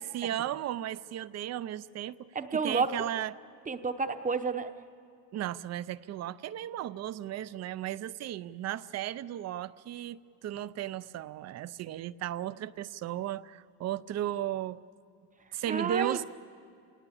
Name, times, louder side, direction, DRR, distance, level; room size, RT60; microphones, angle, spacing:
voice 1, 0.0-3.3 5.3-14.8 15.5-16.2, right 12 dB, 35° right, 17 dB, 0.5 m, -35 dB
voice 2, 2.3-2.9 3.7-4.7 15.7-16.2, right 5 dB, 15° right, 9 dB, 0.8 m, -30 dB
28.5 x 18.5 x 8.6 m, 2.4 s
cardioid pair, 135°, 45 cm